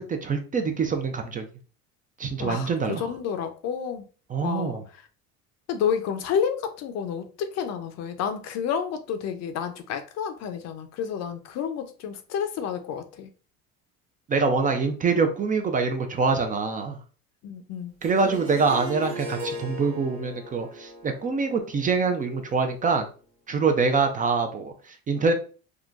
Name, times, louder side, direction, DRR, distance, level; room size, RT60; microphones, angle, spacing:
voice 1, 0.0-1.5 2.2-3.1 4.3-4.8 14.3-17.0 18.0-23.1 23.5-25.3, right 4 dB, 25° right, 0.4 m, -25 dB
voice 2, 2.4-4.1 4.4-4.8 5.7-13.3 17.4-17.9, left 7 dB, 55° left, 0.6 m, -30 dB
Harp, 18.0-23.0, right 1 dB, 85° right, 1.2 m, -39 dB
3.7 x 2.2 x 2.4 m
supercardioid pair, 95°, 32 cm